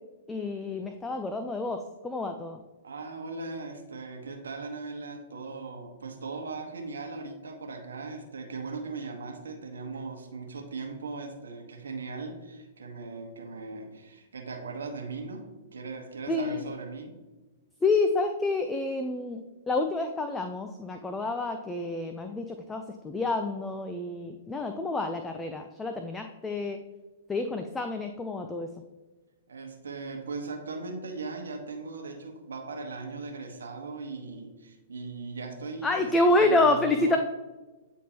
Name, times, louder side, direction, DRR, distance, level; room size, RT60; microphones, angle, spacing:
voice 1, 0.3-2.6 16.3-16.6 17.8-26.8 27.3-28.7 35.8-37.2, left 2 dB, 10° left, 6 dB, 0.4 m, -28 dB
voice 2, 2.8-15.4 15.7-17.2 29.5-36.1 36.4-37.2, right 3 dB, 75° right, 2 dB, 1.2 m, -38 dB
9.1 x 3.6 x 2.9 m, 1.2 s
hypercardioid pair, 115°, 0 cm